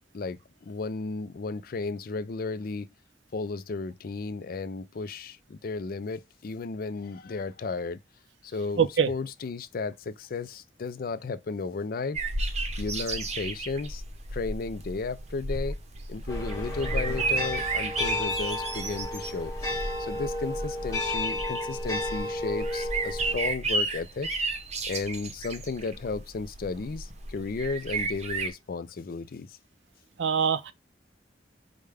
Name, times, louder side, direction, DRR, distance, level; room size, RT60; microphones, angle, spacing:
voice 1, 0.1-2.9 3.3-8.0 8.4-12.2 12.8-14.0 14.3-15.8 16.1-24.3 24.8-29.6, left 4 dB, 55° left, 0.4 m, -34 dB
voice 2, 8.8-9.1 30.2-30.7, right 7 dB, 80° right, 0.5 m, -23 dB
sound 1, 12.1-28.5, right 3 dB, 40° right, 0.7 m, -33 dB
sound 2, 16.3-23.5, left 1 dB, 20° left, 1.2 m, -32 dB
5.0 x 2.2 x 3.4 m
head